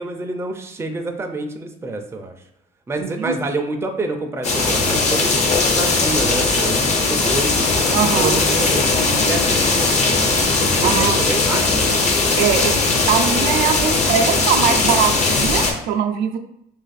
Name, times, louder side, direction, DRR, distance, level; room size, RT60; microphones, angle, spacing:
voice 1, 0.0-2.4 2.9-5.3 5.7-7.7 8.0-8.3 8.6-8.8 9.1-10.3 10.8-12.0 12.6-12.7, right 2 dB, 15° right, 4 dB, 0.4 m, -27 dB
voice 2, 3.0-3.4 7.9-8.4 10.8-11.2 12.4-12.8 13.1-16.4, right 8 dB, 85° right, 4 dB, 0.4 m, -21 dB
sound 1, 4.4-15.7, left 3 dB, 40° left, 0.6 m, -18 dB
2.5 x 2.5 x 4.0 m, 0.76 s
cardioid pair, 110°, 17 cm